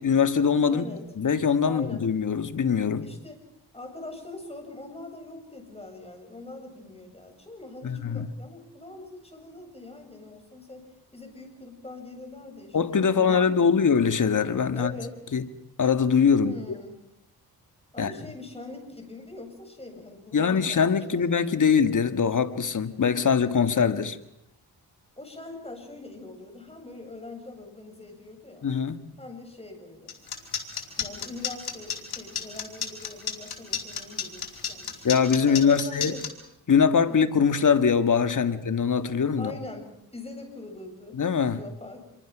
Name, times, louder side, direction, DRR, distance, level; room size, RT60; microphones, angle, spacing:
voice 1, 0.0-0.9 1.2-3.0 7.8-8.3 12.7-14.9 15.3-15.4 15.8-16.5 18.0-18.1 20.3-24.2 28.6-29.0 35.0-36.1 36.7-39.5 41.1-41.6, left 6 dB, 50° left, 1.9 m, -22 dB
voice 2, 0.7-1.0 1.6-2.1 3.0-3.4 3.7-13.8 14.7-15.2 16.3-17.0 17.9-21.6 25.2-28.7 29.2-30.1 31.0-35.2 35.5-36.4 37.1-37.3 39.4-41.2 41.5-42.1, left 2 dB, 15° left, 7.9 m, -43 dB
sound 1, 30.1-36.3, left 8 dB, 75° left, 4.4 m, -31 dB
27.0 x 23.5 x 6.2 m
cardioid pair, 60°, 39 cm